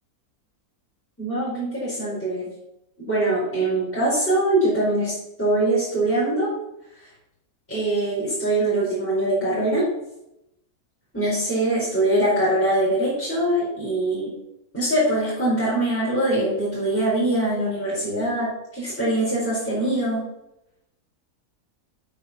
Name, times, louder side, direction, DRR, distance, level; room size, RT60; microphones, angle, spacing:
voice 1, 1.2-2.4 3.1-6.5 7.0-7.1 7.7-9.9 11.1-14.3 14.7-20.2, right 1 dB, 10° left, -9 dB, 4.3 m, -23 dB
8.4 x 7.1 x 6.1 m, 0.85 s
omnidirectional pair, 1.6 m